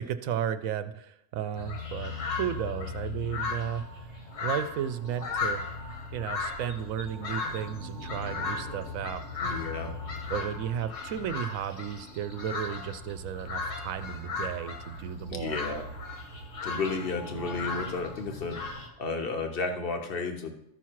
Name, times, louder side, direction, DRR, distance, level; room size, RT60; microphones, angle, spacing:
voice 1, 0.0-2.1 2.4-4.1 4.4-5.7 6.1-9.4 10.3-15.6, right 9 dB, 80° right, 11 dB, 1.0 m, -34 dB
sound 1, 1.6-18.9, left 4 dB, 65° left, 1.9 m, -36 dB
voice 2, 9.4-9.9 15.3-15.8 16.6-18.6 19.0-20.5, left 3 dB, 45° left, 5 dB, 1.2 m, -32 dB
13.5 x 5.8 x 4.6 m, 0.79 s
omnidirectional pair, 1.4 m